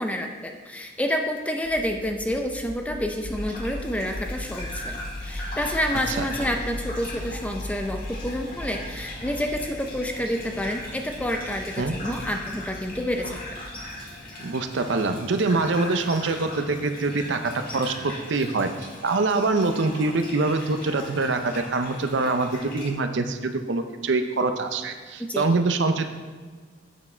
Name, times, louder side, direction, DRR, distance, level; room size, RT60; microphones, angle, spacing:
voice 1, 0.0-13.6 25.3-25.5, equal, 5° left, 3 dB, 0.5 m, -29 dB
sound 1, 1.6-13.8, left 1 dB, 85° left, 1.0 m, -38 dB
Gurgling / Bathtub (filling or washing), 3.2-22.9, left 1 dB, 50° left, 1.9 m, -40 dB
sound 2, 4.1-18.1, left 1 dB, 25° left, 1.5 m, -46 dB
voice 2, 14.4-26.1, right 3 dB, 70° right, 8 dB, 0.6 m, -25 dB
8.3 x 6.0 x 4.3 m, 1.5 s
head